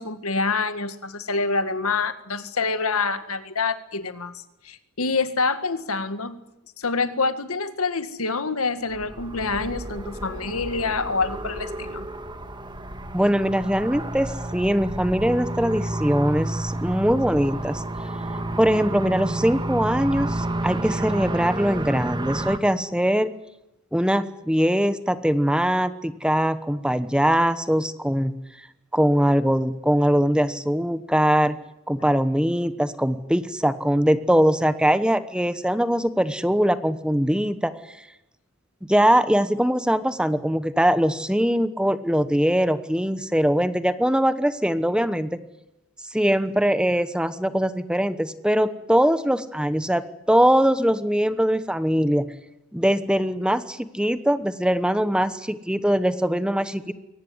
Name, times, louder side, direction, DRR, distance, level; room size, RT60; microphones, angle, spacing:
voice 1, 0.0-6.4 6.8-12.1, left 4 dB, 80° left, 11 dB, 1.9 m, -26 dB
sound 1, 8.9-22.6, right 1 dB, 20° right, 1.6 m, -30 dB
voice 2, 13.1-17.8 18.6-23.3 23.9-28.3 28.9-31.6 31.9-37.7 38.8-45.4 46.1-50.0 50.3-52.3 52.7-56.9, equal, 5° right, 12 dB, 1.1 m, -22 dB
23.0 x 18.5 x 9.6 m, 0.91 s
head